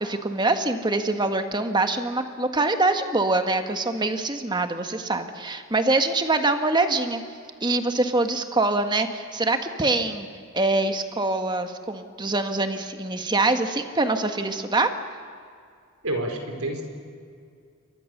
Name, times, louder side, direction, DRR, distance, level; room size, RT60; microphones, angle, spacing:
voice 1, 0.0-7.2 7.6-10.3 10.5-14.9, right 2 dB, 20° right, 7 dB, 1.5 m, -24 dB
voice 2, 16.0-16.8, right 1 dB, 80° right, 3 dB, 4.7 m, -28 dB
28.5 x 23.5 x 6.7 m, 2.3 s
head